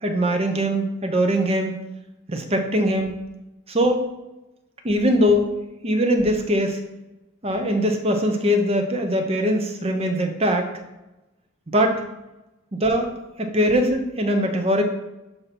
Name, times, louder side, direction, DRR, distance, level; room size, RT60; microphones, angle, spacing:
voice 1, 0.0-1.8 2.3-3.2 3.7-4.1 4.8-5.5 5.8-6.8 7.4-10.7 11.7-12.0 12.7-13.1 13.4-14.8, equal, 30° right, 4 dB, 0.7 m, -21 dB
6.6 x 2.9 x 5.8 m, 0.98 s
head